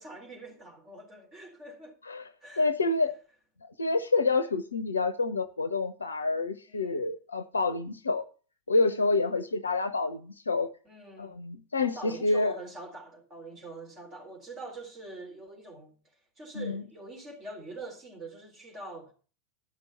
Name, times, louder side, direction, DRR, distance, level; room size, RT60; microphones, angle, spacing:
voice 1, 0.0-2.0 2.4-2.7 6.7-7.1 10.8-11.3 11.8-16.0 16.4-19.1, right 2 dB, 25° right, 4.0 m, -44 dB
voice 2, 2.6-3.1 3.8-8.2 8.7-10.7 11.2-12.5 16.5-16.8, left 3 dB, 75° left, 0.7 m, -28 dB
12.0 x 6.1 x 6.8 m
figure-of-eight pair, 90°, 0 cm